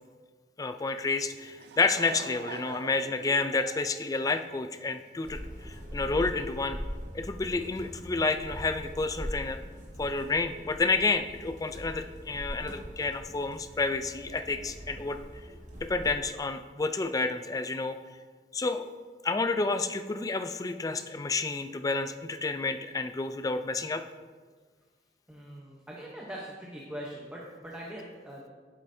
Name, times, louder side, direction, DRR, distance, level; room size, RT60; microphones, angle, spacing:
voice 1, 0.6-6.8 7.1-9.6 10.0-15.2 15.8-18.0 18.5-18.9 19.2-24.0, left 3 dB, 20° left, 9 dB, 0.3 m, -30 dB
Laughter / Crowd, 1.3-5.1, right 4 dB, 75° right, 0.5 m, -44 dB
sound 1, 5.2-16.1, equal, 45° right, 1.6 m, -42 dB
voice 2, 25.3-28.5, right 1 dB, 10° right, -4 dB, 0.8 m, -42 dB
8.9 x 7.6 x 2.7 m, 1.5 s
head